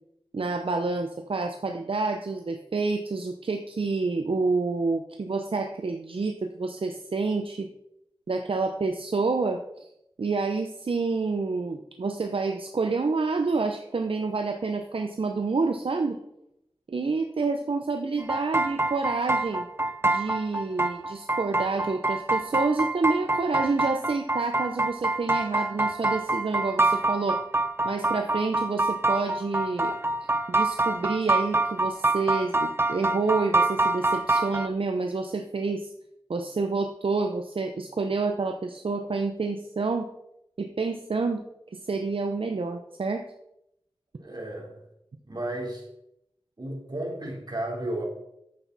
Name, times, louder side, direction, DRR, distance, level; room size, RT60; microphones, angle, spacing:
voice 1, 0.3-7.7 8.3-9.9 10.2-16.2 16.9-19.7 20.0-27.4 27.8-29.9 30.2-35.9 36.3-40.1 40.6-41.4 41.7-43.2, right 3 dB, 70° right, 6 dB, 0.8 m, -28 dB
sound 1, 18.2-34.7, right 2 dB, 25° right, 0.6 m, -26 dB
voice 2, 44.2-44.8 45.2-45.9 46.6-48.0, right 1 dB, 45° right, -1 dB, 3.8 m, -33 dB
9.8 x 8.2 x 4.2 m, 0.80 s
cardioid pair, 45°, 10 cm